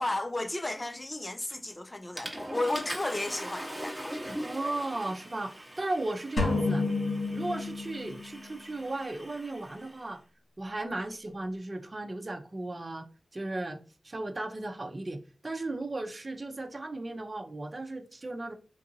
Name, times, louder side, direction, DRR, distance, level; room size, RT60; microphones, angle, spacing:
voice 1, 0.0-4.1, left 2 dB, 25° left, 0.4 m, -33 dB
Water / Toilet flush, 1.5-1.8 2.2-10.0, equal, 5° right, 0.9 m, -42 dB
voice 2, 4.4-6.9 7.3-10.2 10.6-13.1 13.3-13.8 14.0-18.5, right 2 dB, 35° right, 0.6 m, -36 dB
sound 1, 6.4-8.4, left 3 dB, 70° left, 1.1 m, -30 dB
3.8 x 2.5 x 2.7 m
wide cardioid pair, 80°, 0 cm